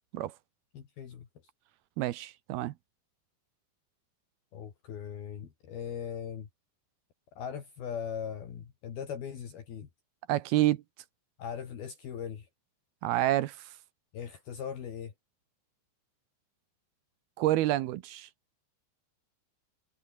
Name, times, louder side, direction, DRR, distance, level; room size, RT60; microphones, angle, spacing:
voice 1, 0.7-1.3 4.5-6.5 7.4-9.9 11.4-12.5 14.1-15.1, left 8 dB, 60° left, 4.4 m, -39 dB
voice 2, 2.0-2.7 10.3-10.8 13.0-13.6 17.4-18.3, right 15 dB, 75° right, 2.5 m, -28 dB
omnidirectional pair, 5.2 m